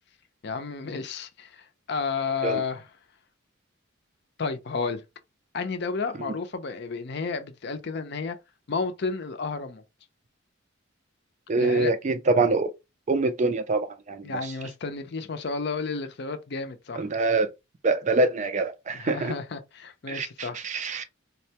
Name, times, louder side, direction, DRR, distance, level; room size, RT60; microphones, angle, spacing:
voice 1, 0.4-2.9 4.4-5.0 5.5-8.4 8.7-9.8 11.6-12.0 14.2-17.1 18.9-20.6, left 4 dB, 55° left, 0.5 m, -32 dB
voice 2, 11.5-12.7 13.1-14.3 17.0-17.5 17.8-19.3 20.1-21.0, right 3 dB, 35° right, 0.4 m, -25 dB
4.0 x 2.1 x 2.8 m
head